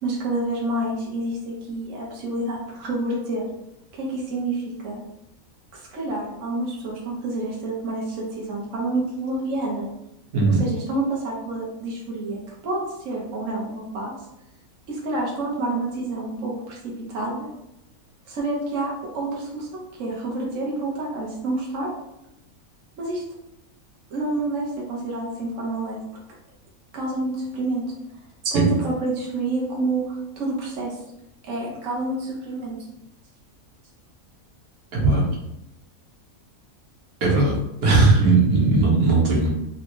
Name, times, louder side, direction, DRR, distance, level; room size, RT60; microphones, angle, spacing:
voice 1, 0.0-3.4 3.9-5.0 5.7-9.9 10.6-14.1 14.9-17.5 18.3-21.9 23.0-23.2 24.1-26.0 26.9-27.8 28.5-31.0 31.4-32.8, right 2 dB, 65° right, -3 dB, 1.2 m, -28 dB
voice 2, 34.9-35.3 37.2-37.5 37.8-39.5, right 3 dB, 85° right, -4 dB, 1.6 m, -18 dB
3.6 x 3.3 x 3.0 m, 0.86 s
omnidirectional pair, 1.5 m